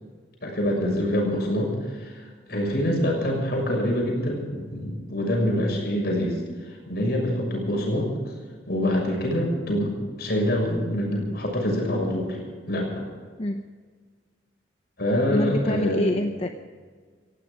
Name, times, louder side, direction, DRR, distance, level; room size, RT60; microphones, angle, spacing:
voice 1, 0.4-6.4 6.7-8.1 8.7-9.9 10.2-12.4 12.7-12.9 15.0-16.1, equal, 60° left, 0 dB, 6.6 m, -25 dB
voice 2, 15.3-16.5, left 1 dB, 35° left, 6 dB, 0.8 m, -26 dB
17.5 x 16.0 x 5.1 m, 1.6 s
head